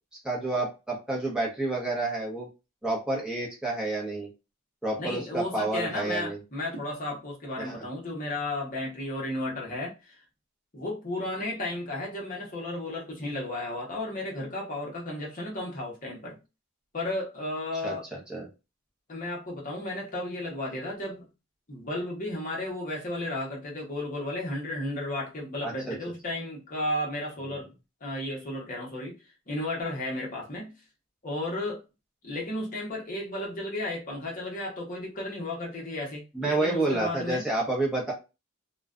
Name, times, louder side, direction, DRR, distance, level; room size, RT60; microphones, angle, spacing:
voice 1, 0.2-2.5 2.8-4.3 4.8-6.4 7.6-7.9 17.8-18.5 25.6-26.0 27.4-27.6 36.3-38.1, right 2 dB, 5° right, 0.7 m, -29 dB
voice 2, 5.0-10.2 10.7-16.4 16.9-18.1 19.1-21.3 21.7-27.7 28.0-29.1 29.5-30.7 31.2-31.8 32.2-37.5, left 1 dB, 35° left, 0.8 m, -33 dB
2.4 x 2.1 x 2.4 m
head